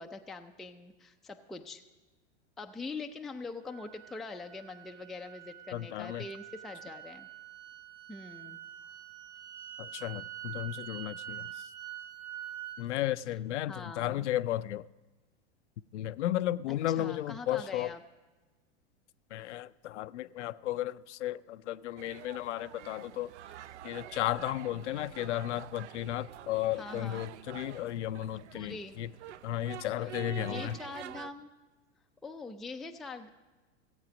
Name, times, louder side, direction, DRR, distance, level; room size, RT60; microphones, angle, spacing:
voice 1, 0.0-1.9 2.6-7.3 8.1-8.6 13.6-14.3 16.7-18.0 26.8-27.2 28.5-29.0 30.0-31.5 32.2-33.3, left 3 dB, ahead, 0.3 m, -43 dB
sound 1, 3.7-12.8, right 12 dB, 45° right, 2.2 m, -46 dB
voice 2, 5.7-6.3 9.8-11.6 12.8-14.9 15.9-17.9 19.3-23.3 23.8-29.1 29.4-30.8, left 13 dB, 85° left, 0.5 m, -34 dB
sound 2, 22.0-31.3, right 11 dB, 85° right, 0.5 m, -47 dB
16.0 x 8.1 x 5.2 m
hypercardioid pair, 110°, 34 cm